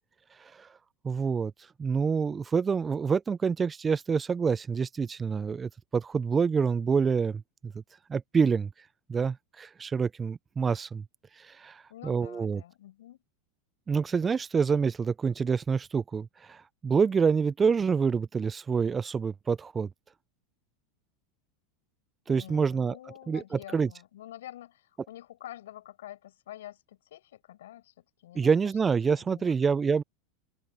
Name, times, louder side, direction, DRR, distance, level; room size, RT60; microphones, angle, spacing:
voice 1, 1.0-1.5 1.8-7.7 8.1-8.7 9.1-11.0 11.4-12.6 13.9-19.9 22.3-23.0 23.3-23.9 28.4-30.0, right 5 dB, 20° right, 0.4 m, -27 dB
voice 2, 11.9-13.2 22.3-28.5 28.8-29.9, left 13 dB, 80° left, 5.4 m, -48 dB
open air
hypercardioid pair, 100°, 0 cm